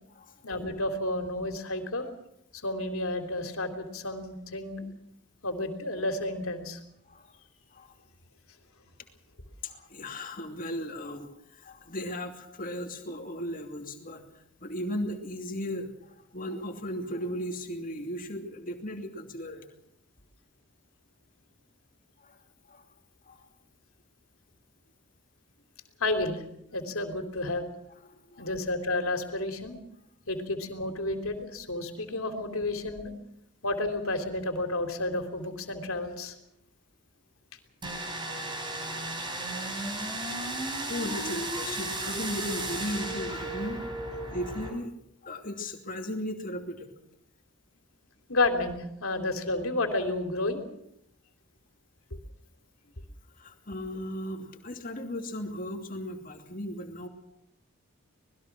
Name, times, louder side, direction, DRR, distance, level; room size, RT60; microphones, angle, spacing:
voice 1, 0.4-2.1 2.5-4.9 5.4-6.8 26.0-26.4 26.7-27.7 28.4-29.8 30.3-33.1 33.6-36.3 48.3-50.6 52.1-52.2, left 2 dB, 70° left, 6 dB, 3.3 m, -31 dB
voice 2, 9.6-14.2 14.6-19.7 22.2-22.3 22.7-22.8 23.3-23.4 28.1-28.5 38.8-38.9 39.5-39.7 40.6-43.8 44.2-44.9 45.2-46.9 53.4-57.1, equal, 40° left, 4 dB, 2.7 m, -36 dB
sound 1, 37.8-44.7, right 1 dB, 20° right, 4.8 m, -34 dB
25.5 x 20.5 x 6.1 m, 0.77 s
head